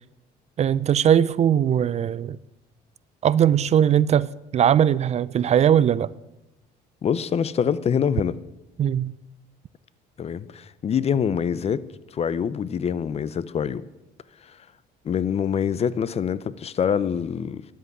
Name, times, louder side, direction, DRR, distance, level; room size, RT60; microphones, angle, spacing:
voice 1, 0.6-2.4 3.2-6.1 8.8-9.1, right 9 dB, 40° right, 0.4 m, -20 dB
voice 2, 7.0-8.4 10.2-11.8 12.1-13.8 15.0-17.7, left 7 dB, 40° left, 0.6 m, -25 dB
10.0 x 8.2 x 9.6 m
cardioid pair, 110°, 17 cm